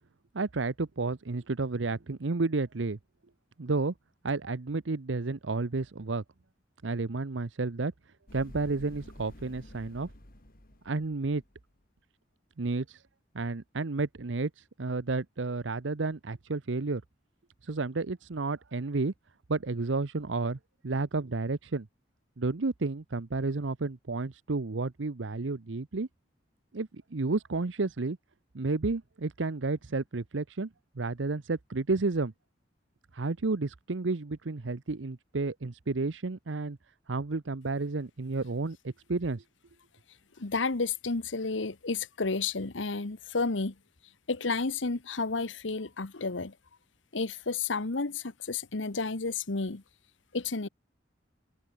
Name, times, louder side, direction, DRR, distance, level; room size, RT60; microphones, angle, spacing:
voice 1, 0.3-3.0 3.6-3.9 4.2-6.2 6.8-7.9 8.3-10.1 10.8-11.4 12.6-13.0 13.3-17.0 17.6-19.1 19.5-21.9 22.4-26.1 26.7-28.2 28.5-30.7 31.0-32.3 33.1-36.8 37.1-39.4, right 3 dB, 85° right, 0.8 m, -31 dB
sound 1, 8.3-11.7, left 1 dB, 50° left, 3.5 m, -50 dB
voice 2, 40.4-43.7 44.3-46.5 47.1-49.8 50.3-50.7, left 4 dB, 90° left, 1.2 m, -31 dB
head